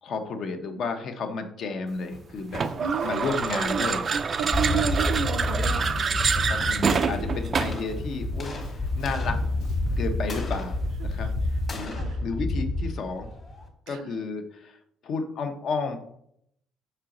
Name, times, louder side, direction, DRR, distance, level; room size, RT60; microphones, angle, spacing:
voice 1, 0.0-2.7 3.0-4.1 4.7-4.8 6.3-9.4 10.0-11.3 11.7-13.3 13.9-16.0, left 4 dB, 50° left, 6 dB, 0.8 m, -32 dB
Drum kit, 2.1-10.0, left 2 dB, 85° left, 1.1 m, -48 dB
sound 1, 2.5-7.9, right 5 dB, 30° right, 0.3 m, -26 dB
voice 2, 2.8-3.3 3.5-6.2 7.0-7.4 11.0-11.3 11.8-12.2 13.9-14.1, right 7 dB, 75° right, 11 dB, 0.6 m, -33 dB
sound 2, 4.5-13.7, left 2 dB, 35° left, 1.5 m, -29 dB
5.9 x 4.4 x 3.8 m, 0.72 s
cardioid pair, 135°, 0 cm